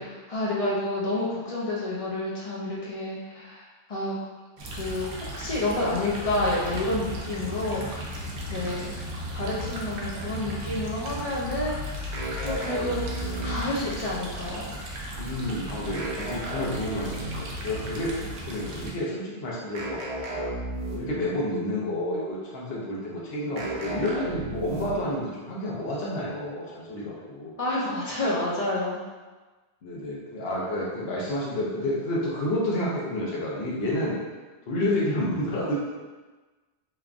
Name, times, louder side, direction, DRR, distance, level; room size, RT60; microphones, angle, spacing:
voice 1, 0.0-4.2 4.7-8.1 8.5-8.9 9.3-12.1 12.4-13.2 13.4-14.7 27.6-29.0, left 2 dB, 45° left, -6 dB, 0.5 m, -29 dB
sound 1, 4.6-18.9, equal, 85° right, 0.9 m, -36 dB
sound 2, 12.1-13.9 15.9-17.6 19.7-21.3 23.6-25.2, right 2 dB, 55° right, 0.4 m, -33 dB
voice 2, 15.2-20.0 20.3-20.5 20.9-27.5 29.8-34.2 34.7-35.8, left 1 dB, 70° left, -5 dB, 0.9 m, -30 dB
3.2 x 2.2 x 2.4 m, 1.3 s
omnidirectional pair, 1.1 m